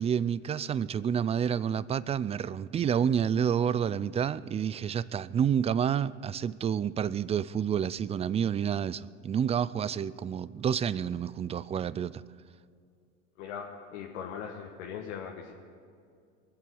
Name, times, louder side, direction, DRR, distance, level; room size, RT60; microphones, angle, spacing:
voice 1, 0.0-12.2, right 8 dB, 20° right, 0.3 m, -29 dB
voice 2, 13.4-15.5, left 7 dB, 75° left, 1.5 m, -40 dB
23.0 x 7.9 x 6.9 m
hypercardioid pair, 85°, 35 cm